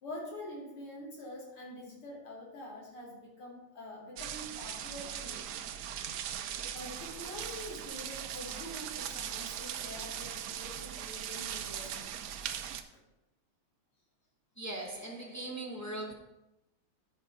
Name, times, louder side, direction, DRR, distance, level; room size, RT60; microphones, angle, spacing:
voice 1, 0.0-5.4 6.5-12.0, left 1 dB, 80° left, 3.3 m, -46 dB
sound 1, 4.2-12.8, right 9 dB, 75° right, 0.9 m, -39 dB
voice 2, 14.6-16.1, right 2 dB, 15° left, 0.7 m, -39 dB
11.5 x 5.2 x 4.6 m
omnidirectional pair, 2.4 m